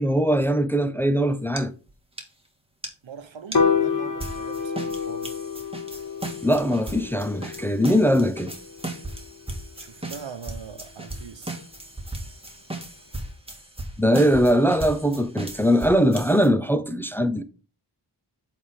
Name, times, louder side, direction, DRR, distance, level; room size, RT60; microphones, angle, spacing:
voice 1, 0.0-1.7 6.4-8.5 14.0-17.4, equal, 5° left, 0.6 m, -21 dB
sound 1, 1.6-1.7 1.9-2.0 2.2-2.3 2.8-2.9 3.5-3.6 4.2-16.5, right 1 dB, 10° right, 1.8 m, -37 dB
voice 2, 3.0-5.3 9.8-11.6, right 6 dB, 75° right, 1.0 m, -41 dB
Piano, 3.5-9.9, left 6 dB, 40° left, 1.2 m, -29 dB
7.8 x 3.6 x 4.9 m
wide cardioid pair, 60°, 46 cm